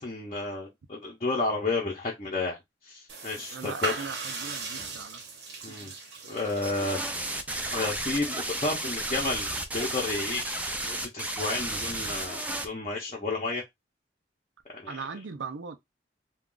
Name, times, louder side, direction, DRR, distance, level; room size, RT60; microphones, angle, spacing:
voice 1, 0.0-2.6 2.8-3.9 5.6-5.9 6.3-7.2 7.7-13.6 14.7-14.9, left 3 dB, 35° left, 0.7 m, -32 dB
sound 1, 3.1-9.8, right 3 dB, 60° right, 0.8 m, -39 dB
voice 2, 3.5-5.2 5.7-6.0 14.9-15.8, right 5 dB, 85° right, 0.5 m, -39 dB
sound 2, 6.6-12.7, right 1 dB, 10° right, 0.4 m, -33 dB
2.4 x 2.3 x 3.7 m
head